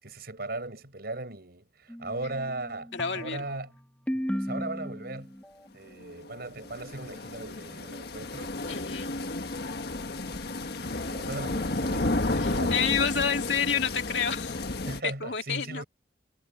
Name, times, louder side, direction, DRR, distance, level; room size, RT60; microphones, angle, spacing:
voice 1, 0.0-3.7 4.1-5.3 5.7-8.8 9.2-9.7 10.2-12.9 14.8-15.8, right 2 dB, 60° right, 6.8 m, -38 dB
sound 1, 1.9-5.5, equal, 10° left, 3.5 m, -36 dB
voice 2, 2.9-3.4 8.7-9.1 12.4-14.6 15.0-15.8, left 6 dB, 80° left, 2.3 m, -29 dB
sound 2, 6.1-15.0, left 2 dB, 65° left, 1.6 m, -32 dB
head